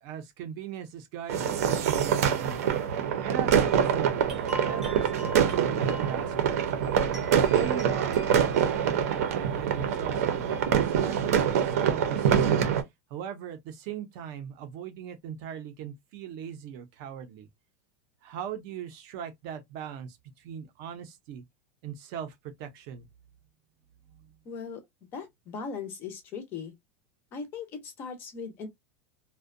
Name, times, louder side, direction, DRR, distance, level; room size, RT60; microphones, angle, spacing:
voice 1, 0.0-2.9 3.2-4.2 4.6-6.6 7.3-10.5 10.8-12.7 13.1-17.5 18.2-21.4 21.8-23.1 24.2-24.3, right 9 dB, 40° right, 0.5 m, -39 dB
sound 1, 1.3-12.8, right 8 dB, 80° right, 0.7 m, -25 dB
sound 2, 3.4-11.9, right 2 dB, 5° right, 0.8 m, -45 dB
voice 2, 24.5-24.8 25.1-26.7 27.3-28.7, left 5 dB, 25° left, 0.5 m, -38 dB
2.5 x 2.1 x 2.4 m
supercardioid pair, 175°, 8 cm